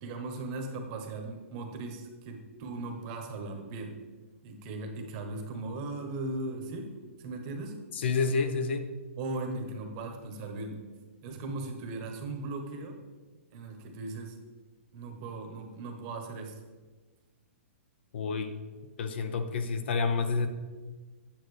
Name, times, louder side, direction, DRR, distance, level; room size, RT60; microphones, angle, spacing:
voice 1, 0.0-4.0 4.4-7.7 9.2-10.9 11.2-13.0 13.5-14.3 14.9-16.6, right 2 dB, 30° right, 4 dB, 1.0 m, -38 dB
voice 2, 7.9-8.9 18.1-18.5 19.0-20.5, left 4 dB, 55° left, 9 dB, 0.7 m, -29 dB
8.8 x 7.5 x 3.3 m, 1.3 s
hypercardioid pair, 165°, 7 cm